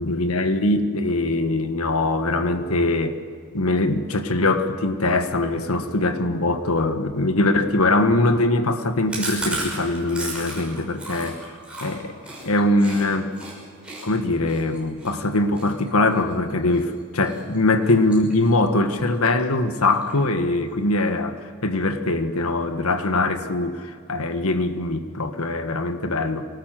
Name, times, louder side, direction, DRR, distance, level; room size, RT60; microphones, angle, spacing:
voice 1, 0.0-3.2 3.5-11.4 11.8-12.1 12.4-13.3 14.0-26.5, left 2 dB, 85° left, 8 dB, 1.6 m, -22 dB
Chewing mastication, 9.1-13.0 13.3-13.5 13.8-16.8 17.2-17.6 17.8-18.7 19.0-19.1 19.4-19.5 19.8-20.4, right 2 dB, 5° right, 6.1 m, -34 dB
24.5 x 19.0 x 7.7 m, 2.2 s
head